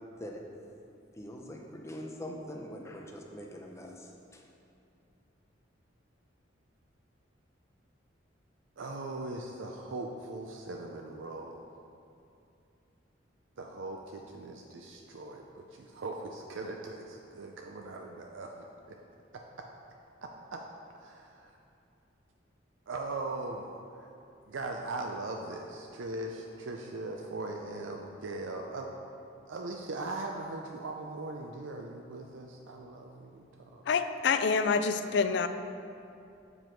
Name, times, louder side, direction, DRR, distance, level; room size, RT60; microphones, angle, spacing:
voice 1, 1.1-4.4, equal, 15° left, 0 dB, 0.6 m, -43 dB
voice 2, 8.8-11.6 13.6-19.0 19.3-19.7 20.2-20.6 21.0-21.5 22.9-23.7 23.9-24.1 24.5-28.9 29.5-33.8, right 2 dB, 85° right, 2 dB, 0.5 m, -40 dB
voice 3, 33.9-35.5, left 5 dB, 60° left, 10 dB, 0.3 m, -27 dB
7.5 x 5.0 x 4.5 m, 2.6 s
head